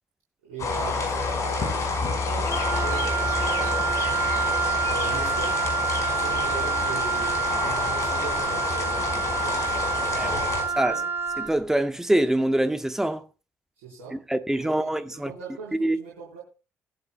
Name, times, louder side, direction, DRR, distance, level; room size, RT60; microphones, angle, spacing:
voice 1, 0.4-4.2 4.8-5.7 6.0-9.7 10.1-11.1 13.8-14.2 14.5-16.4, right 4 dB, 70° right, 3.9 m, -40 dB
sound 1, 0.6-10.6, left 3 dB, 45° left, 5.2 m, -28 dB
Wind instrument woodwind instrument, 2.4-11.5, right 5 dB, 35° right, 3.7 m, -28 dB
voice 2, 11.4-13.2 14.1-15.3 15.8-16.0, right 1 dB, 5° right, 1.1 m, -24 dB
18.5 x 12.0 x 2.2 m
figure-of-eight pair, 45°, 7 cm